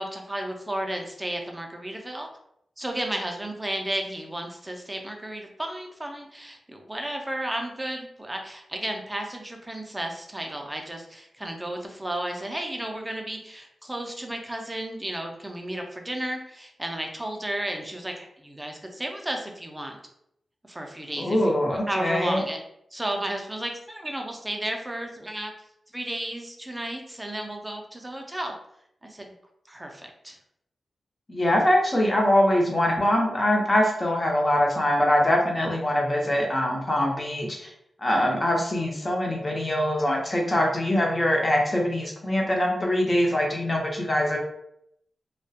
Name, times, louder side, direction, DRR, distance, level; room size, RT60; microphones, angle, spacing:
voice 1, 0.0-2.3 2.8-20.0 20.7-22.6 22.9-25.5 25.9-28.5 29.0-29.3 29.7-30.4, right 1 dB, 15° right, 2 dB, 0.4 m, -33 dB
voice 2, 21.2-22.4 31.3-37.7 38.0-44.4, left 1 dB, 25° left, -1 dB, 0.7 m, -23 dB
2.3 x 2.1 x 2.7 m, 0.73 s
wide cardioid pair, 85°, 0 cm